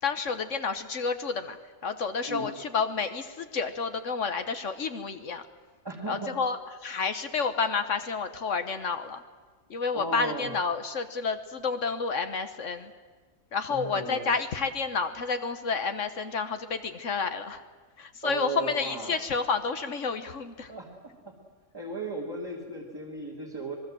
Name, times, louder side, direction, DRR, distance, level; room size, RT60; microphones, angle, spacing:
voice 1, 0.0-5.4 6.1-9.2 9.7-12.9 13.5-17.6 18.0-20.7, left 5 dB, 70° left, 9 dB, 1.5 m, -30 dB
voice 2, 5.8-6.4 9.9-10.5 13.7-14.3 18.2-19.2 20.7-20.9 21.7-23.8, right 2 dB, 15° right, -4 dB, 2.9 m, -35 dB
25.5 x 21.5 x 7.7 m, 1.4 s
omnidirectional pair, 1.3 m